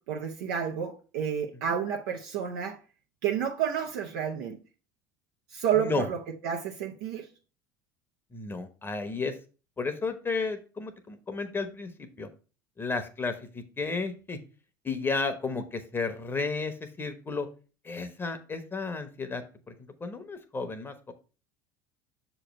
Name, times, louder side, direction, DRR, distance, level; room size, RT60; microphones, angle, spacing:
voice 1, 0.1-2.8 3.2-4.6 5.5-6.2 6.4-7.3, right 8 dB, 70° right, 0.8 m, -30 dB
voice 2, 8.3-9.4 9.8-12.3 12.8-14.4 14.8-17.5 17.8-19.4 20.0-21.1, left 4 dB, 20° left, 0.9 m, -33 dB
6.5 x 3.1 x 5.1 m
hypercardioid pair, 80°, 10 cm